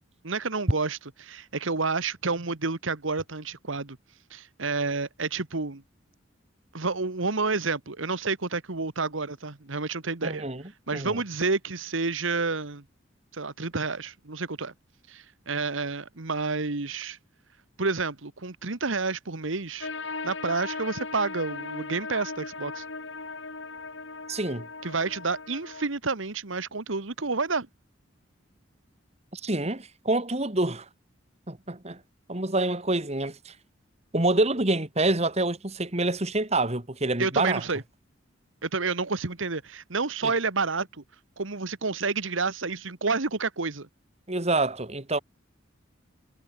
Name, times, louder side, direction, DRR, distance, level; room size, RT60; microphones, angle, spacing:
voice 1, 0.2-4.0 4.3-5.8 6.7-10.5 10.9-12.8 13.3-14.7 15.1-17.2 17.8-19.9 20.2-22.8 24.8-27.7 37.2-37.8 38.6-41.0 41.4-43.9, right 4 dB, 80° right, 1.5 m, -29 dB
voice 2, 10.2-10.6 10.9-11.2 24.3-24.7 29.3-30.9 31.5-32.0 32.3-33.5 34.1-37.6 40.2-40.3 44.3-45.2, right 2 dB, 35° right, 2.4 m, -27 dB
sound 1, 19.8-25.9, left 3 dB, 70° left, 3.2 m, -38 dB
head